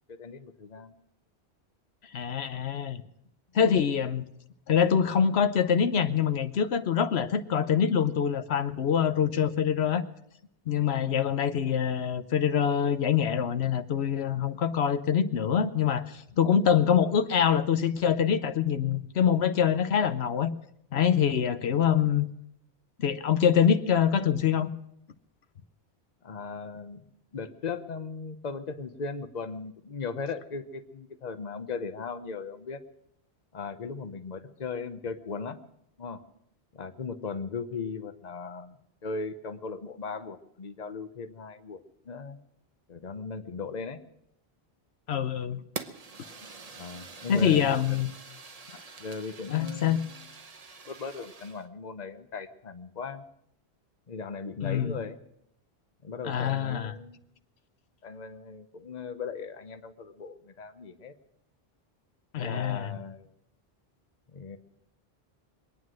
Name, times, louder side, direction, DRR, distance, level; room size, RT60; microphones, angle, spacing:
voice 1, 0.1-1.0 10.9-11.3 21.5-21.6 26.2-27.0 27.3-32.8 33.5-35.6 36.0-36.2 36.7-42.4 42.9-44.0 46.8-48.0 49.0-50.2 50.9-53.2 54.1-55.2 56.0-57.2 58.0-61.1 62.3-63.3 64.3-64.6, left 4 dB, 45° left, 9 dB, 1.0 m, -38 dB
voice 2, 2.1-3.0 3.5-4.2 4.7-10.0 10.7-20.5 20.9-22.3 23.0-24.7 45.1-45.6 47.3-48.1 49.5-50.0 54.6-55.0 56.2-56.9 62.3-63.0, left 8 dB, 85° left, 10 dB, 1.1 m, -25 dB
Fire, 45.8-51.7, right 4 dB, 40° right, 1.0 m, -45 dB
23.5 x 9.5 x 6.3 m, 0.75 s
omnidirectional pair, 1.1 m